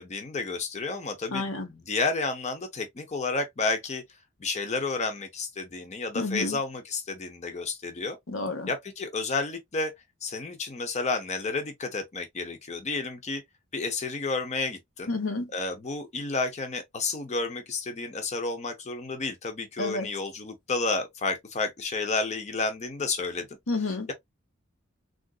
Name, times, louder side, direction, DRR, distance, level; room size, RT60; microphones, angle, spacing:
voice 1, 0.0-4.0 4.4-8.2 8.7-9.9 10.2-13.4 13.7-15.1 15.5-23.5, left 3 dB, 35° left, 0.6 m, -31 dB
voice 2, 1.3-1.7 6.1-6.6 8.3-8.7 15.1-15.5 19.8-20.1 23.7-24.1, left 2 dB, 90° left, 0.9 m, -30 dB
3.7 x 2.5 x 2.3 m
head